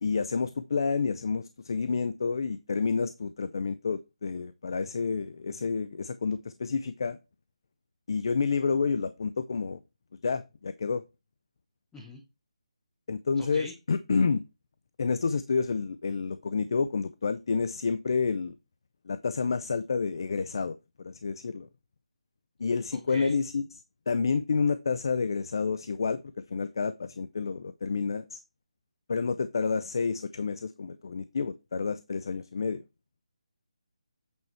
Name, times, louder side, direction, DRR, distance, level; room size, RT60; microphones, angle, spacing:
voice 1, 0.0-7.2 8.1-9.8 10.2-11.0 13.1-14.4 15.0-18.6 19.1-21.7 22.6-23.8 24.1-26.2 26.5-28.4 29.1-32.8, left 5 dB, 40° left, 0.4 m, -29 dB
voice 2, 13.4-13.7 22.9-23.4, left 1 dB, 5° left, 0.7 m, -43 dB
8.2 x 4.7 x 4.3 m
hypercardioid pair, 175°, 4 cm